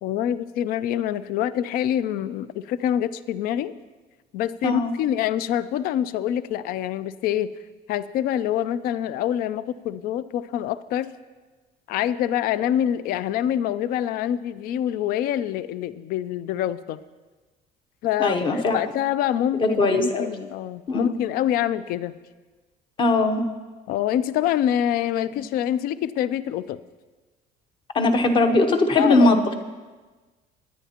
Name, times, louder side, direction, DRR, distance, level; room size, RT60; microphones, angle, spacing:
voice 1, 0.0-3.7 4.3-7.5 7.9-11.1 11.9-17.0 18.0-22.1 23.9-26.8 29.0-29.3, left 11 dB, 60° left, 16 dB, 0.4 m, -25 dB
voice 2, 18.2-18.8 19.6-20.3 20.9-21.2 23.0-23.4 27.9-29.5, left 2 dB, 30° left, 7 dB, 0.8 m, -20 dB
19.5 x 10.0 x 2.9 m, 1.3 s
cardioid pair, 175°, 17 cm